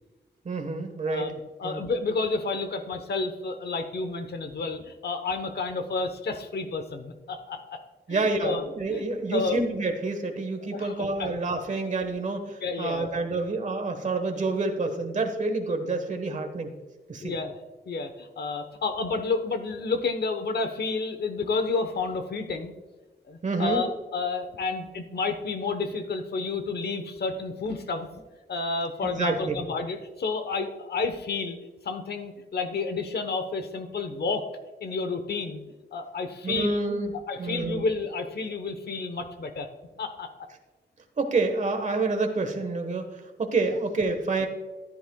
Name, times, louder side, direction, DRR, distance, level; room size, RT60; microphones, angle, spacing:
voice 1, 0.4-1.3 1.6-1.8 8.1-16.8 17.1-17.3 23.4-23.8 29.0-29.6 36.4-37.1 37.4-37.8 41.2-44.5, right 3 dB, 40° right, 6 dB, 1.3 m, -28 dB
voice 2, 1.1-7.8 8.1-8.6 8.9-9.0 9.3-9.6 10.7-11.3 12.6-13.1 17.2-17.5 17.9-22.7 23.3-28.1 28.5-31.6 31.8-34.5 34.8-35.6 35.9-36.8 37.3-39.7 40.0-40.3, left 4 dB, 60° left, 8 dB, 1.0 m, -30 dB
14.5 x 10.5 x 2.3 m, 1.2 s
wide cardioid pair, 160°, 18 cm